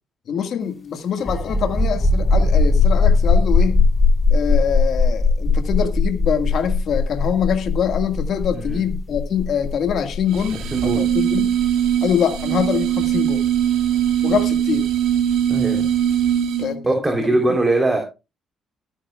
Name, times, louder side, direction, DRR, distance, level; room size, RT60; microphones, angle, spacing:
voice 1, 0.3-3.8 4.3-11.5 12.0-13.5 14.2-14.9 16.6-17.0 17.3-17.4, left 8 dB, 65° left, 1.7 m, -24 dB
sound 1, 1.2-14.6, left 3 dB, 30° left, 4.1 m, -19 dB
voice 2, 8.5-8.8 10.6-11.1 15.5-15.9 16.8-18.0, right 2 dB, 25° right, 3.4 m, -21 dB
sound 2, 10.3-16.8, right 10 dB, 85° right, 2.1 m, -21 dB
19.5 x 10.0 x 2.3 m
supercardioid pair, 70°, 0 cm